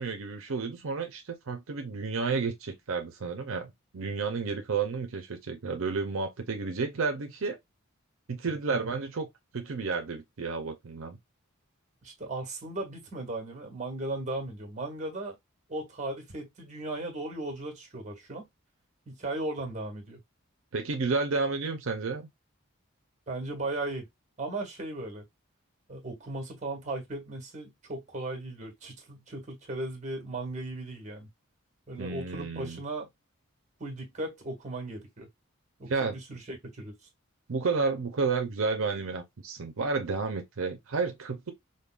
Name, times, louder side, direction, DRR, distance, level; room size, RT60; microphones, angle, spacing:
voice 1, 0.0-7.6 8.3-9.3 9.5-11.2 20.7-22.3 32.0-32.8 35.9-36.2 37.5-41.5, right 4 dB, 75° right, 0.6 m, -31 dB
voice 2, 8.7-9.0 12.0-15.3 15.7-18.5 19.1-20.2 23.3-24.1 24.4-25.2 25.9-31.3 31.9-33.1 33.8-35.3 35.8-36.9, right 2 dB, 35° right, 1.5 m, -37 dB
5.2 x 2.2 x 2.4 m
head